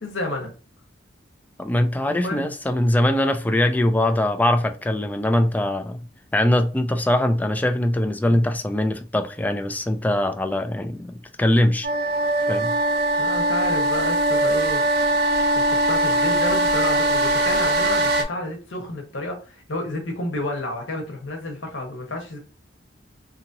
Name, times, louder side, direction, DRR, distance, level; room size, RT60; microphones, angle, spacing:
voice 1, 0.0-0.5 2.1-2.5 13.2-14.8 15.5-22.4, left 1 dB, 85° left, 1.1 m, -30 dB
voice 2, 1.6-6.0 6.3-11.1 11.4-11.9 12.5-12.7, left 1 dB, 10° left, 0.3 m, -22 dB
sound 1, 11.8-18.2, right 1 dB, 60° right, 0.5 m, -21 dB
2.9 x 2.7 x 2.6 m
head